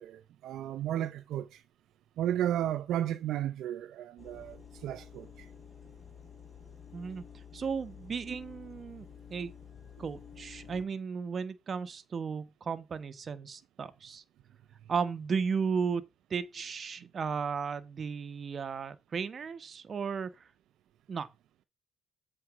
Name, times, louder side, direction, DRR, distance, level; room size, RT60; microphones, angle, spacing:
voice 1, 0.0-1.6 2.2-5.5 17.0-17.1, right 11 dB, 80° right, 0.6 m, -34 dB
sound 1, 4.2-10.8, left 7 dB, 40° left, 3.4 m, -51 dB
voice 2, 6.9-7.2 7.5-9.5 10.0-14.2 14.9-16.0 16.3-20.3 21.1-21.3, right 6 dB, 45° right, 1.1 m, -35 dB
7.9 x 4.3 x 5.9 m
cardioid pair, 90°, 0 cm